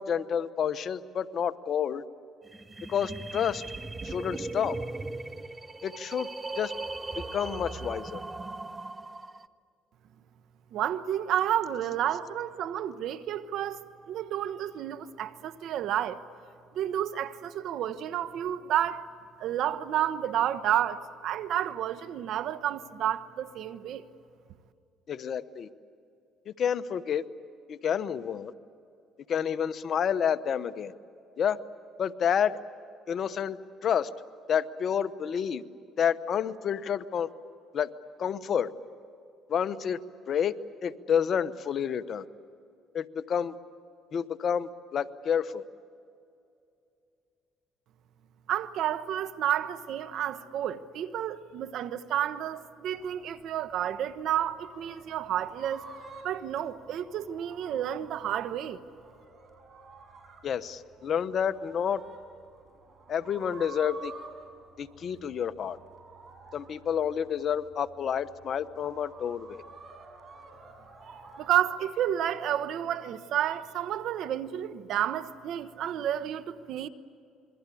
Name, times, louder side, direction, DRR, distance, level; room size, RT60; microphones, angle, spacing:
voice 1, 0.0-2.0 2.9-3.6 4.0-4.8 5.8-6.3 6.6-6.7 7.2-8.2 25.1-25.7 26.5-27.2 27.7-28.5 29.3-30.9 31.4-31.6 32.0-32.6 33.1-34.1 34.5-35.6 36.0-37.3 37.7-37.9 38.2-38.7 39.5-40.0 40.3-40.5 40.8-42.2 42.9-43.5 44.1-45.6 60.4-62.0 63.1-64.1 64.8-65.8 66.5-69.6, left 8 dB, 50° left, 1.0 m, -29 dB
sound 1, 2.5-9.5, right 3 dB, 20° right, 0.9 m, -38 dB
voice 2, 10.7-13.8 14.1-16.2 16.7-19.0 19.4-24.0 48.5-55.8 56.2-58.8 71.4-76.9, right 11 dB, 65° right, 1.2 m, -30 dB
sound 2, 53.0-71.7, right 3 dB, 45° right, 6.4 m, -50 dB
27.0 x 23.0 x 8.5 m
cardioid pair, 90°, 0 cm